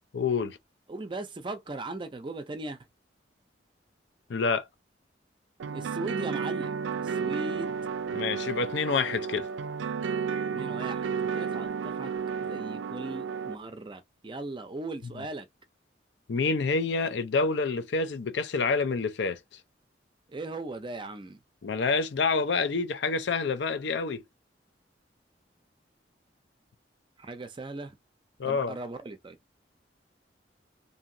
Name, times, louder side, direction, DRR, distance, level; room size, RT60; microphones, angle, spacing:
voice 1, 0.1-0.6 4.3-4.6 8.1-9.5 16.3-19.4 21.6-24.2 28.4-28.7, left 4 dB, 70° left, 0.5 m, -27 dB
voice 2, 0.9-2.8 5.7-7.8 10.5-12.1 12.4-15.5 20.3-21.4 27.2-28.0 28.4-29.4, right 2 dB, 25° right, 0.5 m, -38 dB
sound 1, 5.6-13.5, right 6 dB, 85° right, 0.3 m, -32 dB
2.8 x 2.7 x 2.6 m
head